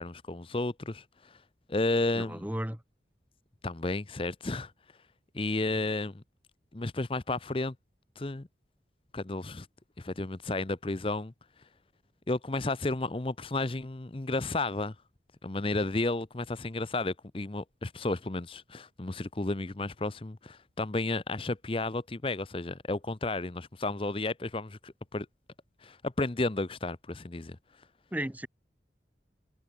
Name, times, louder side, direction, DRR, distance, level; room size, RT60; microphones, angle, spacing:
voice 1, 0.0-1.4 1.7-2.4 3.6-4.7 5.3-6.2 6.7-7.7 8.2-8.5 9.1-9.7 10.0-11.3 12.3-14.9 15.4-25.3 25.8-27.6, left 2 dB, 30° left, 0.7 m, -32 dB
voice 2, 2.1-2.8 28.1-28.5, right 1 dB, 10° right, 1.0 m, -34 dB
head